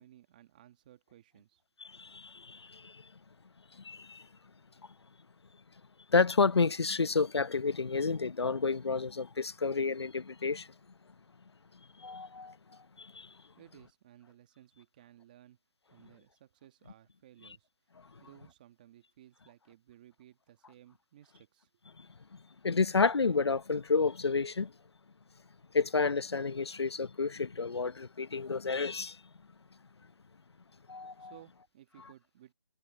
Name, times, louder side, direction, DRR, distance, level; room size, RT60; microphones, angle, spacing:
voice 1, 0.0-1.6 1.9-2.0 13.6-15.6 15.9-17.7 18.2-21.7 31.2-32.5, right 12 dB, 20° right, 1.5 m, -58 dB
voice 2, 1.8-3.1 3.7-4.3 6.1-10.7 12.0-13.4 18.1-18.2 22.0-24.7 25.7-29.2 30.9-31.3, left 4 dB, 90° left, 0.8 m, -31 dB
hypercardioid pair, 170°, 13 cm